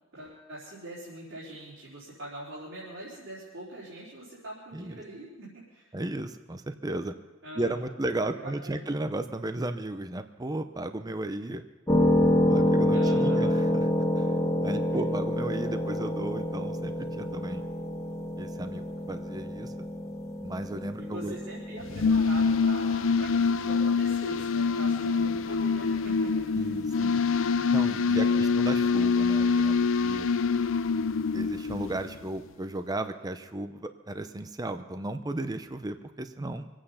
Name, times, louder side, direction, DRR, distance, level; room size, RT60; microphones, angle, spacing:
voice 1, 0.1-5.9 7.4-7.9 8.2-8.8 12.9-13.5 21.0-26.8 28.1-28.5, right 1 dB, 80° right, -9 dB, 4.1 m, -42 dB
voice 2, 5.9-7.1 7.6-11.6 12.4-13.9 14.2-14.3 14.6-17.6 18.4-19.9 20.4-21.4 26.5-27.2 27.7-30.3 31.3-36.7, right 1 dB, 20° right, 9 dB, 0.6 m, -35 dB
sound 1, 11.9-22.1, left 1 dB, 15° left, 1.9 m, -27 dB
sound 2, 21.8-32.2, left 5 dB, 85° left, 0.5 m, -25 dB
24.0 x 8.9 x 5.7 m, 1.1 s
head